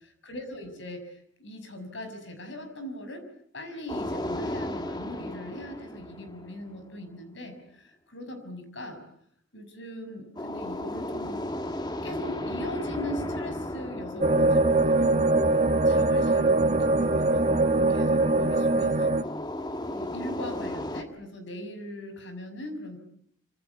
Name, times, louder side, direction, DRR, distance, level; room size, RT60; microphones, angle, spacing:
voice 1, 0.0-3.3 3.5-9.0 9.5-11.4 12.0-15.2 15.8-17.5 17.9-19.2 19.9-23.0, left 1 dB, 65° left, 8 dB, 6.5 m, -40 dB
sound 1, 3.9-7.0 10.4-15.7 19.2-21.0, left 1 dB, 20° left, 1.6 m, -35 dB
sound 2, 14.2-19.2, right 2 dB, 35° right, 1.8 m, -22 dB
26.0 x 26.0 x 8.4 m, 0.68 s
head